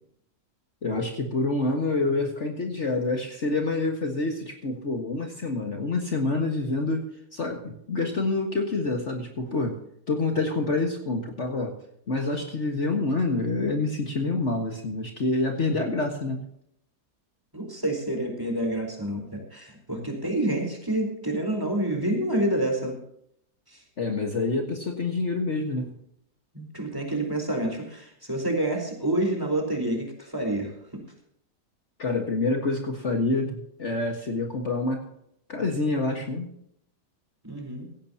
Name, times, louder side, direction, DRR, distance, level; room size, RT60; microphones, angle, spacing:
voice 1, 0.8-9.8 10.1-11.8 12.1-16.4 24.0-25.9 32.0-35.1 35.5-36.5, left 2 dB, 45° left, 2 dB, 1.9 m, -27 dB
voice 2, 17.5-23.0 23.7-23.8 26.5-31.0 37.4-37.9, right 1 dB, 10° right, 2 dB, 4.3 m, -28 dB
17.0 x 16.5 x 2.9 m, 0.72 s
omnidirectional pair, 1.7 m